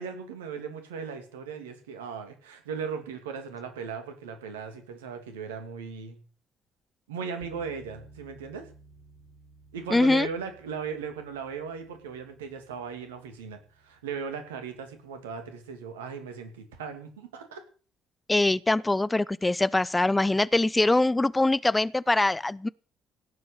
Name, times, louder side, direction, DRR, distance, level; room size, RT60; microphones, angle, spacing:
voice 1, 0.0-6.2 7.1-8.6 9.7-17.6, right 6 dB, 80° right, 2.5 m, -37 dB
sound 1, 7.4-15.6, right 2 dB, 65° left, 5.7 m, -56 dB
voice 2, 9.9-10.3 18.3-22.7, left 2 dB, 15° left, 0.6 m, -23 dB
17.0 x 7.9 x 6.7 m
figure-of-eight pair, 45°, 0 cm